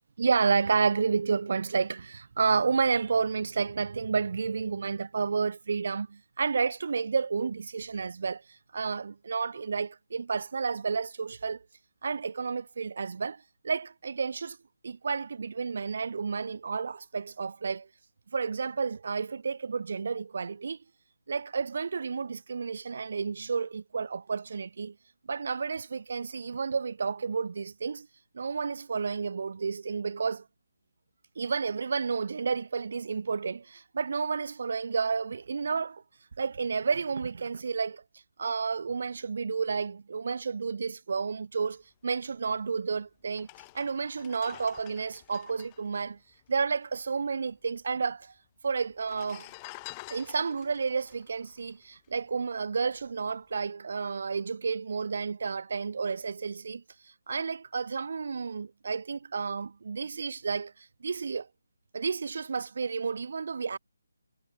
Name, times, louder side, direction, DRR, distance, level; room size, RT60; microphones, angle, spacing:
voice 1, 0.2-11.6 12.0-14.6 14.8-17.9 18.3-20.8 21.3-24.9 25.3-28.1 28.3-30.4 31.3-36.0 36.4-38.0 38.4-43.5 43.7-46.2 46.5-48.3 48.6-49.5 50.1-61.5 61.9-63.8, right 5 dB, 55° right, 5.0 m, -31 dB
sound 1, 42.7-42.8 43.3-47.0 47.3-47.4 47.5-48.2 48.9-52.4 52.8-53.1, left 26 dB, 20° left, 5.8 m, -49 dB
figure-of-eight pair, 155°, 0 cm